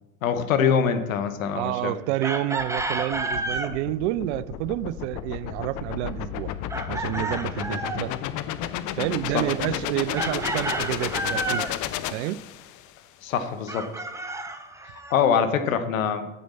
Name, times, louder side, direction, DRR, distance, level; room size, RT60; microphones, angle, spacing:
voice 1, 0.2-2.0 13.2-13.9 15.1-16.3, left 7 dB, 70° left, 0.9 m, -24 dB
voice 2, 1.5-6.5 6.9-8.1 9.0-11.7 12.1-12.4, right 15 dB, 55° right, 0.5 m, -29 dB
Chicken rooster, 2.2-3.7 6.7-8.1 10.2-11.8 13.7-15.2, right 2 dB, 5° right, 0.8 m, -30 dB
sound 1, 2.6-12.9, left 12 dB, 45° left, 0.7 m, -32 dB
9.2 x 7.8 x 4.1 m
figure-of-eight pair, 70°, 42 cm